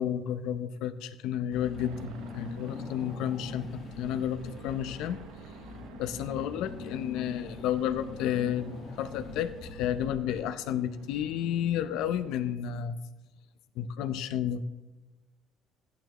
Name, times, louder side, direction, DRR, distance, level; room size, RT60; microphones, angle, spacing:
voice 1, 0.0-5.2 6.0-13.0 13.8-14.6, left 10 dB, 75° left, 11 dB, 0.7 m, -31 dB
Car / Engine, 1.5-10.7, left 4 dB, 40° left, 1.4 m, -43 dB
sound 1, 1.8-12.6, right 7 dB, 90° right, 0.8 m, -51 dB
14.0 x 11.5 x 3.1 m, 1.1 s
cardioid pair, 160°, 0 cm